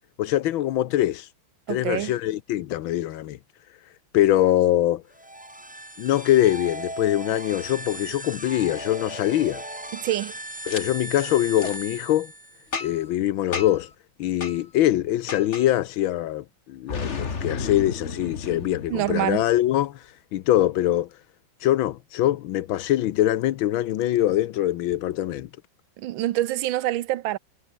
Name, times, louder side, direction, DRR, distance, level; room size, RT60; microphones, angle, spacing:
voice 1, 0.2-1.3 1.7-3.4 4.1-5.0 6.0-9.6 10.7-12.3 12.8-13.9 14.2-20.0 20.3-21.1 21.6-25.5, left 13 dB, 85° left, 1.6 m, -23 dB
voice 2, 1.7-2.1 9.9-10.4 18.9-19.5 26.0-27.4, right 14 dB, 85° right, 1.5 m, -26 dB
sound 1, 5.1-12.8, right 1 dB, 10° right, 0.6 m, -37 dB
Boom, 10.7-10.8 11.6-11.8 12.7-13.1 13.5-13.9 14.4-14.6 15.3-15.7 16.9-19.6, left 5 dB, 35° left, 2.1 m, -33 dB
omnidirectional pair, 2.1 m